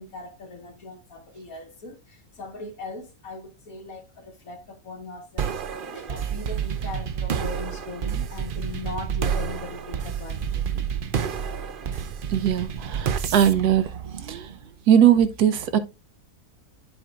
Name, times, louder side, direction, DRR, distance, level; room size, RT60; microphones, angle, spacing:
voice 1, 0.0-10.9, left 3 dB, 60° left, 1.8 m, -39 dB
sound 1, 5.4-14.8, right 7 dB, 60° right, 0.5 m, -29 dB
voice 2, 12.3-13.9 14.2-14.5 14.9-15.8, right 9 dB, 80° right, 1.4 m, -20 dB
12.5 x 4.5 x 2.4 m
omnidirectional pair, 1.7 m